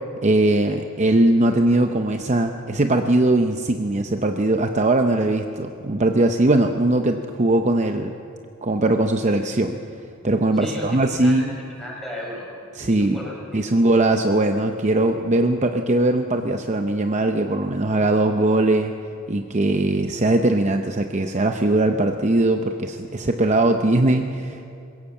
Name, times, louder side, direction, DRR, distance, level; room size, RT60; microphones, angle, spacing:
voice 1, 0.2-8.1 8.6-9.8 10.2-11.6 12.8-13.2 13.5-18.9 19.3-24.6, right 2 dB, 35° right, 5 dB, 0.7 m, -20 dB
voice 2, 10.5-12.5 12.9-13.8, left 1 dB, ahead, -2 dB, 5.3 m, -35 dB
21.5 x 17.0 x 7.2 m, 2.6 s
head